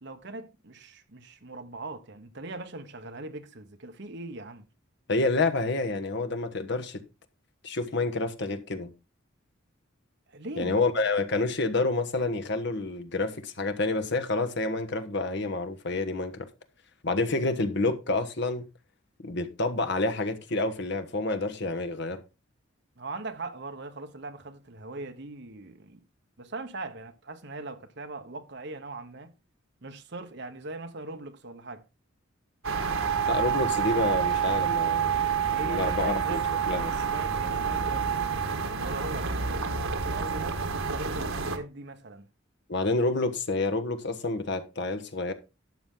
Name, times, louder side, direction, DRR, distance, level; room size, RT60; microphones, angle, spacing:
voice 1, 0.0-4.7 10.3-10.8 23.0-26.0 26.4-29.3 29.8-31.8 35.5-38.1 38.6-42.3, right 2 dB, 55° right, 1.2 m, -40 dB
voice 2, 5.1-7.0 7.6-8.9 10.6-16.5 17.0-18.7 19.2-22.2 33.3-35.2 35.6-36.4 36.7-36.9 42.7-45.3, left 2 dB, 55° left, 1.2 m, -28 dB
sound 1, 32.6-41.6, right 7 dB, 85° right, 1.6 m, -28 dB
12.0 x 7.4 x 3.8 m
head